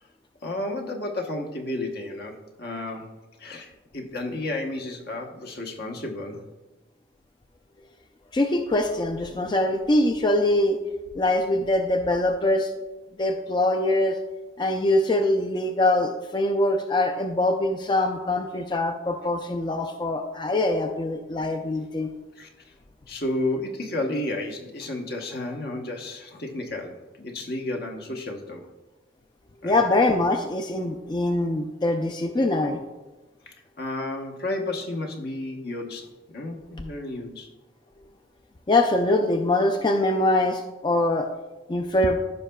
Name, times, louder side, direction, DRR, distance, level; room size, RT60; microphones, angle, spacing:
voice 1, 0.4-6.4 22.4-22.5 23.1-28.7 29.6-29.8 33.5-37.5, left 2 dB, 60° left, 3 dB, 1.0 m, -32 dB
voice 2, 8.3-10.8 11.2-12.7 13.2-14.2 14.6-22.1 29.6-32.8 38.7-41.3 41.7-42.2, left 1 dB, 25° left, 5 dB, 0.4 m, -23 dB
14.5 x 5.4 x 2.2 m, 1.2 s
head